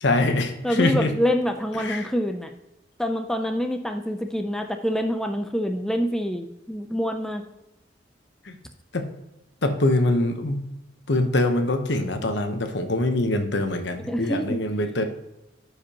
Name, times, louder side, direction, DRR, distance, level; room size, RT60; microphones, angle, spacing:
voice 1, 0.0-1.1 1.8-2.1 8.9-9.1 9.6-10.6 11.1-15.0, left 2 dB, 70° left, 7 dB, 0.9 m, -23 dB
voice 2, 0.6-2.5 3.0-7.4 14.1-14.6, equal, 5° left, 4 dB, 0.4 m, -26 dB
11.5 x 5.0 x 2.9 m, 0.90 s
head